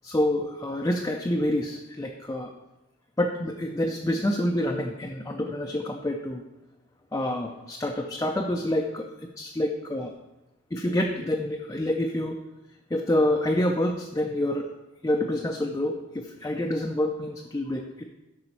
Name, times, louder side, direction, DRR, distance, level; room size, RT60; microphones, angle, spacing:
voice 1, 0.0-2.5 3.2-6.4 7.1-9.1 9.4-10.1 10.7-12.4 12.9-14.7 15.0-18.0, left 1 dB, 15° left, 2 dB, 0.4 m, -27 dB
8.1 x 5.5 x 4.4 m, 0.99 s
head